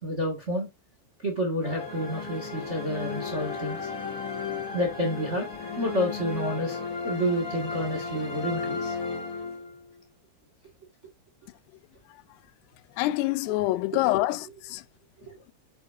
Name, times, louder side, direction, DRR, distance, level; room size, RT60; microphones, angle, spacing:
voice 1, 0.0-0.7 1.2-3.9 4.7-5.5 5.8-6.8 7.0-9.0 15.3-15.4, equal, 30° right, 1.2 m, -29 dB
sound 1, 1.6-10.0, left 4 dB, 25° left, 2.6 m, -34 dB
voice 2, 13.0-14.8, left 17 dB, 90° left, 2.7 m, -26 dB
8.1 x 7.3 x 2.7 m
omnidirectional pair, 4.7 m